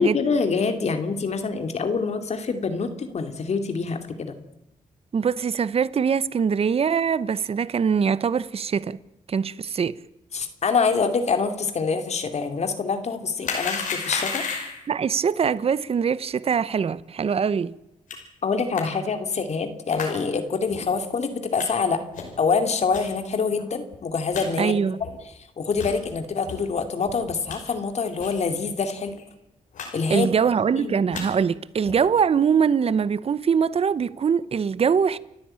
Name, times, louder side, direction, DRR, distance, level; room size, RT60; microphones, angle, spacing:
voice 1, 0.0-4.4 10.3-14.4 18.4-22.0 22.4-24.8 25.6-29.2 29.9-30.3 30.8-30.9, left 5 dB, 60° left, 2.6 m, -25 dB
voice 2, 5.1-9.0 9.3-10.0 14.9-17.7 24.6-25.0 30.1-35.2, right 6 dB, 50° right, 0.8 m, -23 dB
sound 1, 13.4-14.9 18.1-18.2 18.7-18.8 19.9-20.1 20.7-20.8 21.6-21.7 22.1-22.4 22.9-23.0 23.6-23.7 23.9-24.0 24.3-24.5 25.0-25.1 25.7-26.0 26.5-26.6 27.0-27.6 28.2-28.4 28.7-28.8 29.0-29.2 29.7-29.9 30.1-30.5 30.9-31.2 31.8-32.1, left 5 dB, 90° left, 5.5 m, -32 dB
29.5 x 10.5 x 8.9 m
cardioid pair, 70°, 13 cm